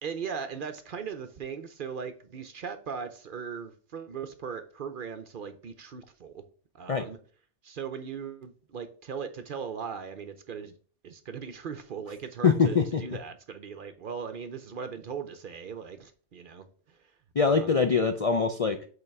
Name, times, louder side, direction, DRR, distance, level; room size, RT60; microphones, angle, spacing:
voice 1, 0.0-6.4 6.7-7.2 7.6-10.7 11.0-17.1 17.4-17.8, right 6 dB, 55° right, 0.7 m, -39 dB
voice 2, 12.4-13.0 17.4-18.8, left 5 dB, 50° left, 0.4 m, -23 dB
5.4 x 3.9 x 5.9 m
omnidirectional pair, 1.2 m